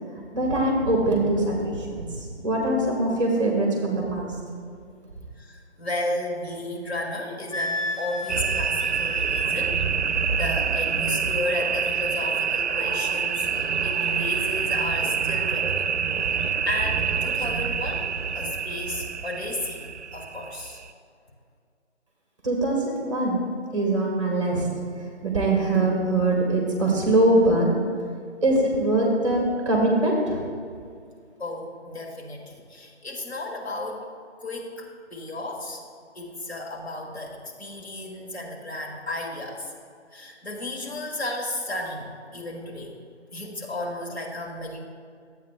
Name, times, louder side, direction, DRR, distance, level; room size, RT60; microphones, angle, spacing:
voice 1, 0.3-4.3 22.4-23.4 23.7-24.7 25.2-27.7 28.4-30.4, right 2 dB, 25° right, -2 dB, 1.3 m, -22 dB
voice 2, 5.4-15.9 16.1-16.2 16.6-20.8 31.4-34.1 34.4-35.8 36.1-39.7 40.1-42.9 43.3-44.9, left 1 dB, 60° left, -1 dB, 1.7 m, -33 dB
Wind instrument woodwind instrument, 7.5-9.5, left 1 dB, 85° left, 0.8 m, -32 dB
sound 1, 8.3-20.9, right 6 dB, 70° right, 0.6 m, -26 dB
12.0 x 8.1 x 2.4 m, 2.2 s
figure-of-eight pair, 160°, 35 cm